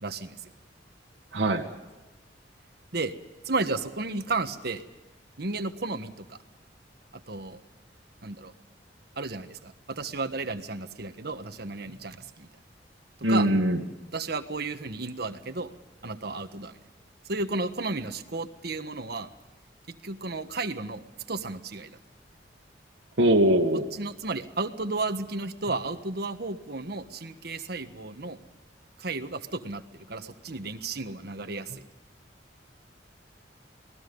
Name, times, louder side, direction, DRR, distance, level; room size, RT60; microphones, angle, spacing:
voice 1, 0.0-0.4 2.9-3.1 3.4-4.8 5.4-6.4 7.3-7.6 8.2-8.5 9.2-12.5 13.3-13.5 14.1-15.7 16.0-16.8 17.3-19.3 19.9-22.0 23.9-28.4 29.0-31.8, right 3 dB, 60° right, 8 dB, 1.5 m, -33 dB
voice 2, 1.3-1.6 13.2-13.8 23.2-23.9, right 1 dB, 85° right, 0 dB, 1.7 m, -21 dB
28.0 x 19.0 x 5.4 m, 1.1 s
head